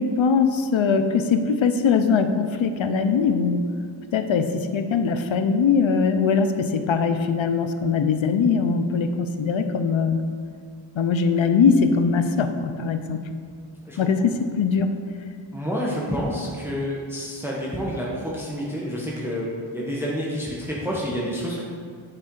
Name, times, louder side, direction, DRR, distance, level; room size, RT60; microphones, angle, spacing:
voice 1, 0.0-3.6 4.1-10.2 11.0-13.2 14.0-14.9, left 5 dB, 75° left, 8 dB, 0.6 m, -21 dB
voice 2, 15.5-21.6, equal, 5° right, -5 dB, 1.1 m, -28 dB
9.0 x 4.3 x 3.8 m, 2.1 s
wide cardioid pair, 55°, 46 cm